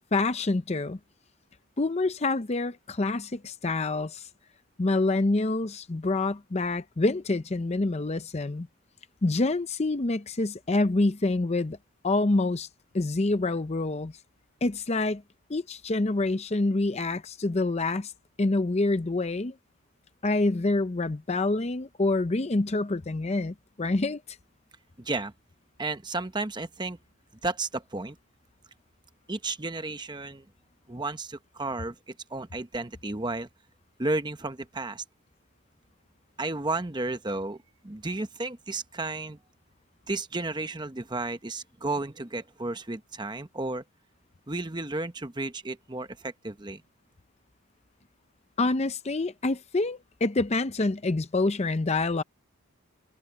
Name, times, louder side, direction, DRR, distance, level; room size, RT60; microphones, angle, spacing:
voice 1, 0.1-1.0 1.8-4.3 4.8-8.7 9.2-11.8 12.0-12.7 12.9-14.1 14.6-15.2 15.5-18.1 18.4-19.5 20.2-24.2 48.6-52.2, left 2 dB, 30° left, 0.6 m, -26 dB
voice 2, 25.0-25.3 25.8-27.0 27.4-28.2 29.3-30.5 30.9-33.5 34.0-35.0 36.4-39.4 40.1-43.8 44.5-46.8, right 2 dB, 20° right, 0.9 m, -33 dB
head